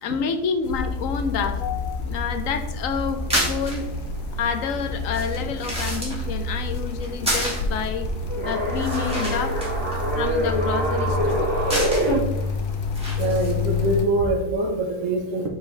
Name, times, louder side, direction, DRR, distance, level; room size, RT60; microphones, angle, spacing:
voice 1, 0.0-3.9 4.4-8.1 8.4-9.6 10.2-11.6, left 6 dB, 65° left, 8 dB, 1.0 m, -28 dB
sound 1, 0.6-14.0, left 3 dB, 80° left, 1.3 m, -29 dB
sound 2, 3.1-13.8, equal, 5° right, 2.2 m, -32 dB
sound 3, 8.3-12.1, equal, 50° left, 2.4 m, -25 dB
voice 2, 13.2-15.5, right 2 dB, 55° right, 2 dB, 1.3 m, -24 dB
8.0 x 4.1 x 3.2 m, 1.0 s
omnidirectional pair, 1.6 m